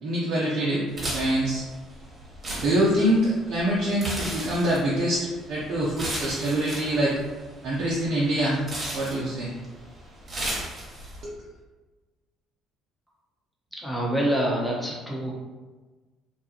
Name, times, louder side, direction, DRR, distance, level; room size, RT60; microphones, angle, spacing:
voice 1, 0.0-1.6 2.6-7.2 7.6-8.6 8.9-9.5 11.2-11.3, right 1 dB, 65° right, -6 dB, 0.5 m, -25 dB
sound 1, 0.9-11.2, right 1 dB, 40° right, 1.0 m, -36 dB
voice 2, 13.8-15.3, right 1 dB, ahead, -3 dB, 0.9 m, -26 dB
2.6 x 2.3 x 2.8 m, 1.3 s
hypercardioid pair, 60°, 0 cm